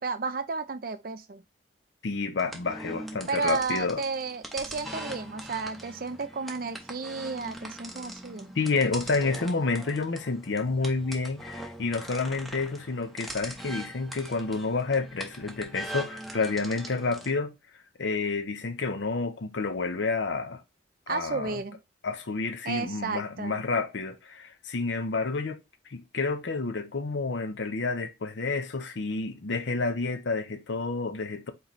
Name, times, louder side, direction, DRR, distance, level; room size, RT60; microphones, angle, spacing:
voice 1, 0.0-1.4 3.3-8.5 21.1-21.8 22.6-23.6, right 4 dB, 50° right, 0.5 m, -32 dB
voice 2, 2.0-4.0 8.6-17.5 18.0-20.6 21.1-21.6 22.0-25.6 25.9-31.5, left 3 dB, 75° left, 0.7 m, -29 dB
sound 1, 2.4-17.3, right 1 dB, ahead, 0.7 m, -42 dB
3.9 x 3.1 x 4.0 m
head